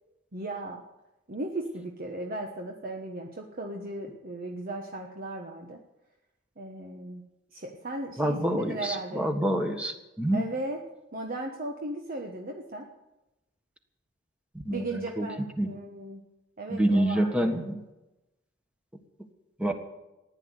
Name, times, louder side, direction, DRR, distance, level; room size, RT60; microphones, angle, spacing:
voice 1, 0.3-0.8 1.3-5.8 6.6-7.2 7.5-9.3 10.3-10.8 11.1-12.9 14.7-16.2 16.6-17.6, right 2 dB, 50° right, 2 dB, 1.3 m, -36 dB
voice 2, 8.2-10.4 14.6-15.3 15.6-15.7 16.7-17.8 19.6-19.7, right 1 dB, 5° right, 5 dB, 1.6 m, -27 dB
15.5 x 10.0 x 8.2 m, 0.98 s
head